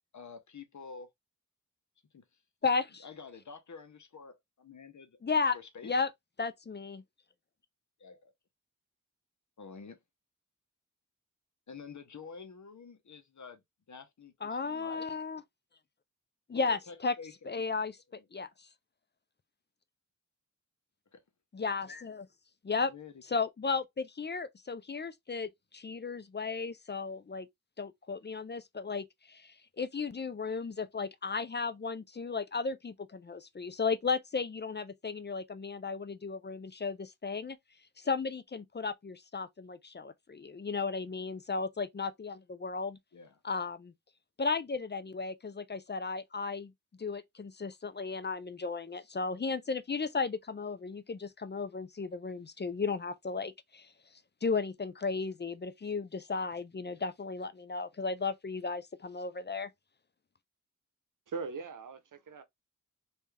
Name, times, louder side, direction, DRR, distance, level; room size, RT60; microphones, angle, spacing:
voice 1, 0.1-1.1 2.1-2.2 3.0-6.0 8.0-8.3 9.6-10.0 11.7-13.6 13.9-15.1 16.5-17.8 18.2-18.3 21.1-21.2 22.9-23.1 43.1-43.4, left 5 dB, 60° left, 1.0 m, -49 dB
voice 2, 2.6-3.0 5.2-5.6 5.8-6.1 6.4-7.0 14.4-15.4 16.5-17.2 17.5-18.7 21.5-22.3 22.6-22.9 23.3-27.5 27.8-37.6 38.0-43.0 43.4-43.9 44.4-46.7 47.0-53.9 54.4-59.7, left 4 dB, 35° left, 0.5 m, -35 dB
voice 3, 61.3-62.4, right 4 dB, 70° right, 0.8 m, -40 dB
3.4 x 2.7 x 3.3 m
cardioid pair, 50°, 33 cm